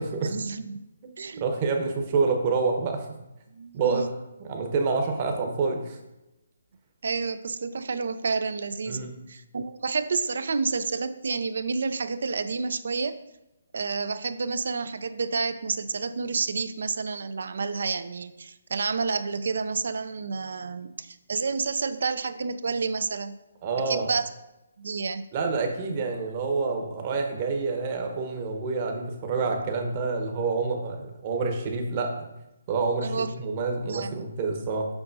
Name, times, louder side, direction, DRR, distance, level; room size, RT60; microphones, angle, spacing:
voice 1, 0.2-0.8 1.2-1.4 3.5-4.1 7.0-13.2 13.7-23.3 23.9-24.3 24.8-25.2 33.0-33.3 33.9-34.1, right 4 dB, 65° right, 12 dB, 0.4 m, -29 dB
voice 2, 1.4-3.1 3.7-4.1 4.4-6.0 8.9-9.1 23.6-24.1 25.3-32.1 32.7-34.9, right 4 dB, 35° right, 3 dB, 1.0 m, -27 dB
6.9 x 5.3 x 2.7 m, 0.95 s
figure-of-eight pair, 145°, 0 cm